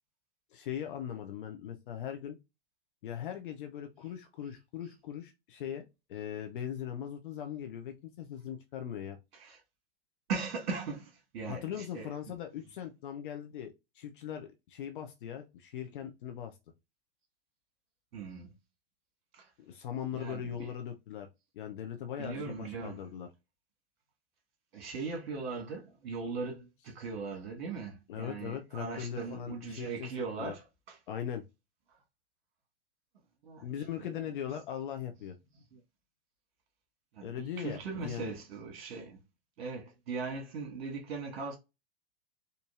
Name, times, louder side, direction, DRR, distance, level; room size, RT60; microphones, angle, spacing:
voice 1, 0.5-2.4 3.0-9.2 11.4-16.6 19.7-21.3 21.6-23.3 28.1-30.1 30.4-30.5 31.1-31.4 33.6-35.4 37.2-38.3, left 9 dB, 55° left, 0.6 m, -40 dB
voice 2, 10.3-12.4 18.1-18.5 19.3-19.5 20.1-20.7 22.2-23.0 24.7-31.0 33.4-33.7 34.0-34.3 35.7-35.8 37.1-39.2 39.6-41.6, right 4 dB, 50° right, 1.4 m, -39 dB
4.3 x 2.6 x 2.3 m
figure-of-eight pair, 100°, 31 cm